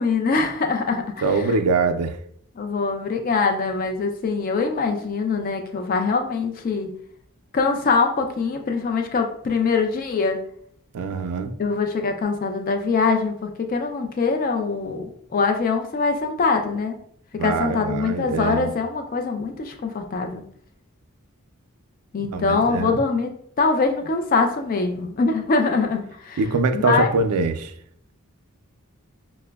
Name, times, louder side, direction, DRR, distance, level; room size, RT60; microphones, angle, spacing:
voice 1, 0.0-1.1 2.6-6.9 7.5-10.4 11.6-17.0 17.3-20.4 22.1-26.4 26.7-27.3, left 4 dB, 40° left, 5 dB, 0.3 m, -23 dB
voice 2, 1.2-2.2 10.9-11.5 17.3-18.7 22.3-23.0 26.4-27.7, right 4 dB, 85° right, 8 dB, 0.4 m, -23 dB
5.7 x 2.0 x 2.2 m, 0.65 s
head